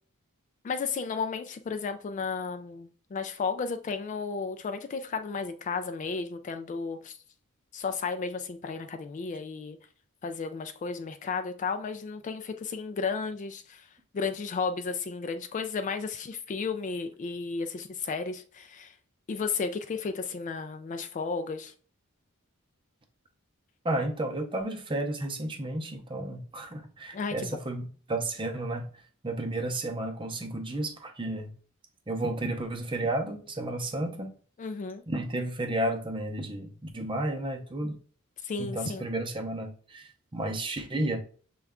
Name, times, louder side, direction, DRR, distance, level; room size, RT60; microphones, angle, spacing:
voice 1, 0.6-7.2 7.7-9.8 10.2-13.8 14.1-18.9 19.3-21.7 27.1-27.6 34.6-35.0 38.4-39.0, left 5 dB, 35° left, 0.3 m, -33 dB
voice 2, 23.8-28.9 29.2-31.5 32.1-34.3 35.1-38.0 38.6-41.2, right 1 dB, 25° right, 0.6 m, -32 dB
6.3 x 2.3 x 3.5 m
head